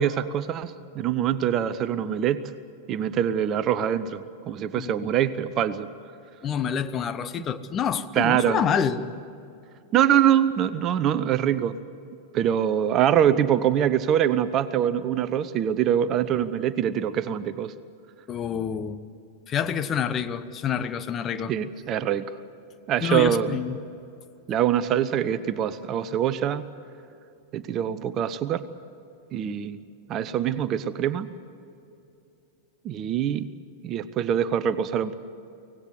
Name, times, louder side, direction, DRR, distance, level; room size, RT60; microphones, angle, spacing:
voice 1, 0.0-2.4 2.9-5.9 8.1-8.6 9.9-11.7 12.3-17.7 21.5-22.4 22.9-23.6 24.5-26.7 27.5-28.7 29.3-29.8 30.1-31.3 32.8-33.4 33.8-35.1, right 10 dB, 35° right, 14 dB, 0.8 m, -24 dB
voice 2, 4.7-5.1 6.4-9.1 18.3-19.0 19.5-21.5 23.0-23.8, left 8 dB, 25° left, 12 dB, 1.1 m, -27 dB
25.0 x 18.5 x 8.0 m, 2.7 s
figure-of-eight pair, 90°, 0 cm